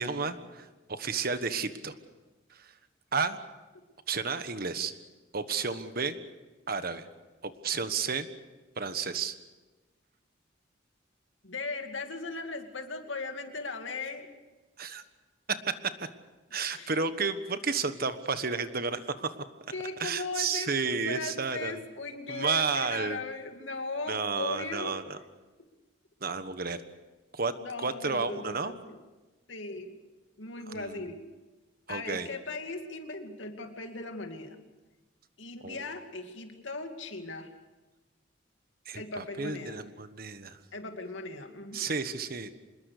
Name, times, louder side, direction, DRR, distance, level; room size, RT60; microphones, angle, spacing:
voice 1, 0.0-1.9 2.5-2.7 3.1-3.4 4.1-4.9 5.3-6.2 6.7-7.1 7.4-8.3 8.8-9.3 14.8-15.0 16.5-19.4 20.0-21.8 22.3-23.2 24.1-25.2 26.2-26.8 27.3-27.5 27.8-28.7 30.7-31.0 31.9-32.3 35.6-35.9 38.8-40.6 41.7-42.5, right 5 dB, 50° right, 10 dB, 1.4 m, -32 dB
voice 2, 11.4-14.3 16.5-17.0 19.7-25.0 27.6-29.0 29.5-30.0 30.4-31.2 31.9-34.6 35.4-37.5 39.0-39.8 40.7-41.9, left 3 dB, 85° left, 5 dB, 2.5 m, -38 dB
26.0 x 21.0 x 6.7 m, 1.2 s
head